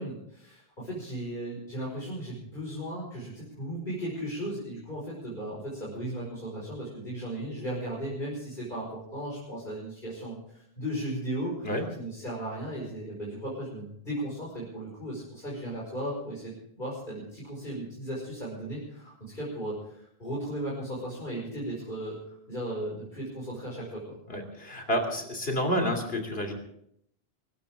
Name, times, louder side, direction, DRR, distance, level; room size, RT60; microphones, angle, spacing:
voice 1, 0.0-24.2, right 1 dB, 50° left, -6 dB, 5.6 m, -36 dB
voice 2, 24.3-26.5, equal, 70° left, 4 dB, 3.3 m, -29 dB
24.0 x 14.0 x 3.7 m, 0.71 s
omnidirectional pair, 1.0 m